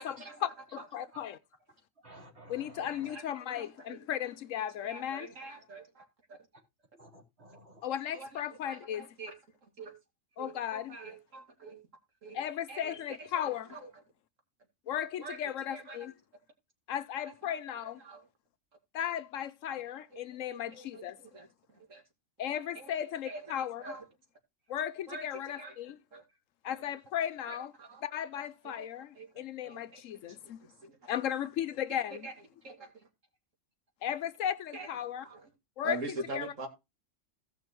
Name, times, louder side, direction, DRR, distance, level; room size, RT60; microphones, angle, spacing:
voice 1, 0.0-0.9 2.8-4.0 4.7-6.4 8.1-9.3 9.6-9.9 10.4-11.8 12.2-12.4 12.7-14.0 15.2-16.1 17.3-18.3 20.1-20.2 20.5-22.0 22.7-23.0 23.2-24.1 25.1-25.8 26.1-26.2 26.7-26.8 27.5-28.1 28.4-31.1 32.1-32.3 32.6-33.1 34.7-34.9 35.2-35.5 35.8-36.7, right 2 dB, 75° right, 2.6 m, -45 dB
voice 2, 0.9-1.3 2.5-5.3 7.8-9.0 10.4-10.8 12.4-13.6 14.9-16.1 16.9-17.9 19.0-20.0 20.4-20.7 21.0-21.1 22.4-23.8 24.7-24.9 25.2-25.6 26.7-27.7 28.1-29.0 29.6-29.9 31.1-32.2 34.0-34.5 34.9-35.2 35.8-36.0 36.3-36.4, left 10 dB, 75° left, 1.0 m, -35 dB
voice 3, 2.0-3.1 6.9-7.8, right 1 dB, 55° right, 3.9 m, -53 dB
16.5 x 6.0 x 3.0 m
omnidirectional pair, 1.4 m